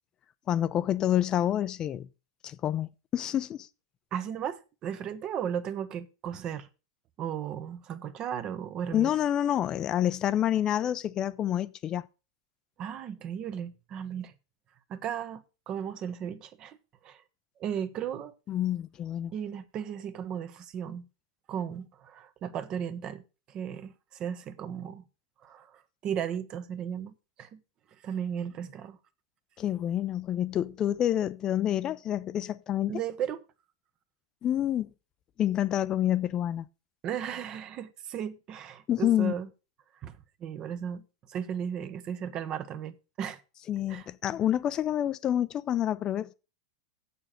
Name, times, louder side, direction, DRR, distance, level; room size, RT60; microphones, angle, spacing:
voice 1, 0.5-2.1 2.4-3.7 8.9-12.1 18.5-19.3 29.6-32.9 34.4-34.9 35.4-36.7 38.9-39.3 43.7-46.3, left 11 dB, 30° left, 0.5 m, -28 dB
voice 2, 4.1-6.7 7.2-9.1 12.8-14.3 14.9-16.8 17.0-17.2 17.6-18.3 19.3-21.1 21.5-23.2 23.5-25.0 25.4-27.6 28.0-29.0 32.9-33.4 37.0-39.5 40.0-41.0 41.3-43.4 43.9-44.1, right 8 dB, 35° right, 1.0 m, -35 dB
7.5 x 6.9 x 6.6 m
hypercardioid pair, 115°, 2 cm